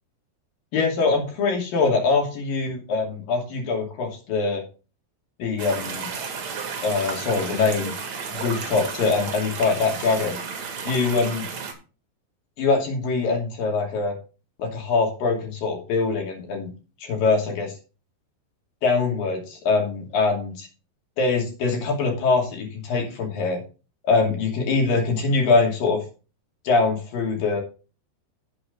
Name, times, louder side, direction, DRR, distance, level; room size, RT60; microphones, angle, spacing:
voice 1, 0.7-4.6 5.4-6.1 6.8-7.9 8.3-10.4 10.8-11.4 12.6-14.2 14.6-16.7 17.0-17.7 18.8-20.7 21.2-23.6 24.0-26.0 26.6-27.6, left 4 dB, 55° left, 1 dB, 4.3 m, -23 dB
sound 1, 5.6-11.7, right 5 dB, 50° right, 2.8 m, -33 dB
11.0 x 8.0 x 3.9 m, 0.34 s
omnidirectional pair, 4.9 m